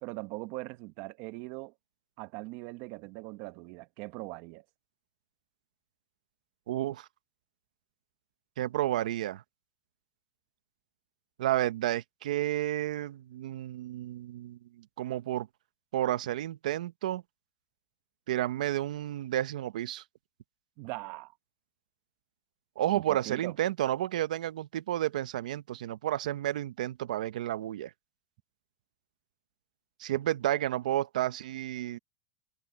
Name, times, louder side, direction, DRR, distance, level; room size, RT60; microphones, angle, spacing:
voice 1, 0.0-1.7 2.2-4.6 20.8-21.3 22.9-23.6, right 22 dB, 55° right, 1.4 m, -40 dB
voice 2, 6.7-7.1 8.6-9.4 11.4-14.6 15.0-15.5 15.9-17.2 18.3-20.0 22.8-27.9 30.0-32.0, right 13 dB, 85° right, 0.9 m, -31 dB
supercardioid pair, 130°, 4 cm